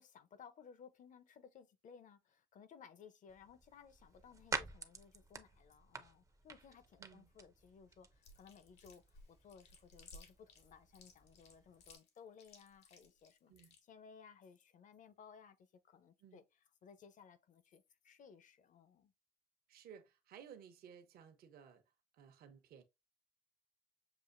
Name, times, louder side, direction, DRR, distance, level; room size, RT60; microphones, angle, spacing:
voice 1, 0.0-16.4 16.8-19.1, left 6 dB, 50° left, 0.7 m, -60 dB
sound 1, 3.3-12.0, right 4 dB, 20° right, 0.6 m, -50 dB
voice 2, 7.0-7.3 13.5-13.8 16.2-16.4 19.7-21.8 22.1-22.8, right 8 dB, 65° right, 0.9 m, -57 dB
Chewing mastication, 8.2-13.8, left 3 dB, 85° left, 1.3 m, -60 dB
6.8 x 2.5 x 2.5 m
cardioid pair, 110°, 17 cm